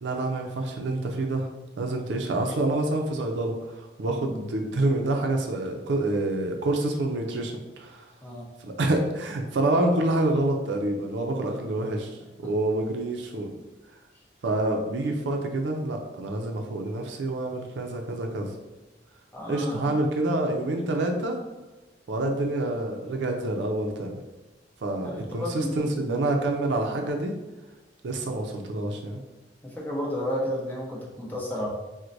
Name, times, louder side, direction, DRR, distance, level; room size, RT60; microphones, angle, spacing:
voice 1, 0.0-1.5 1.8-8.1 8.6-13.6 14.4-18.5 19.5-21.4 22.1-24.2 24.8-27.3 28.0-29.2, right 2 dB, 80° right, 3 dB, 0.5 m, -27 dB
voice 2, 19.3-19.9 22.2-22.5 25.0-26.3 29.6-31.7, left 1 dB, 10° left, -4 dB, 0.7 m, -33 dB
4.5 x 2.1 x 2.6 m, 1.1 s
head